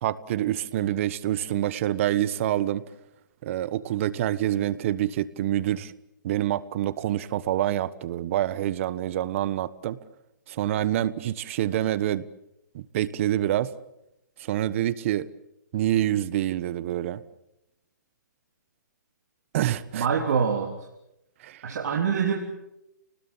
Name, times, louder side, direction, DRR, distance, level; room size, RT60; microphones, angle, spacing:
voice 1, 0.0-2.8 3.4-5.9 6.2-10.0 10.5-12.3 12.7-13.7 14.4-15.3 15.7-17.2 19.5-20.1 21.4-21.6, right 13 dB, 45° right, 17 dB, 1.3 m, -26 dB
voice 2, 19.9-20.7 21.6-22.4, right 6 dB, 60° right, 2 dB, 3.4 m, -25 dB
30.0 x 20.0 x 7.4 m, 0.85 s
hypercardioid pair, 145°, 10 cm